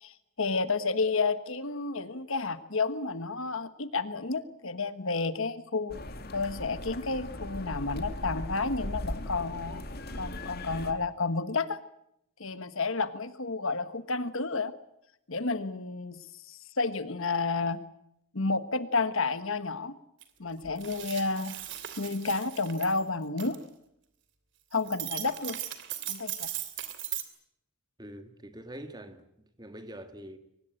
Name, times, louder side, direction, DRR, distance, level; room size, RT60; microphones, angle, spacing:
voice 1, 0.0-6.0 6.3-9.8 10.1-11.8 12.4-14.7 15.3-16.2 16.5-17.8 18.3-20.0 20.4-21.5 22.0-23.6 24.7-25.6 26.1-26.5, left 3 dB, 60° left, 1.4 m, -31 dB
sound 1, 5.9-10.9, left 1 dB, 45° left, 2.5 m, -38 dB
sound 2, 20.2-20.3 20.6-23.0 23.4-23.5 24.7-27.2, right 12 dB, 55° right, 2.9 m, -38 dB
voice 2, 28.0-30.4, right 1 dB, 20° right, 1.8 m, -45 dB
23.5 x 19.0 x 9.0 m
head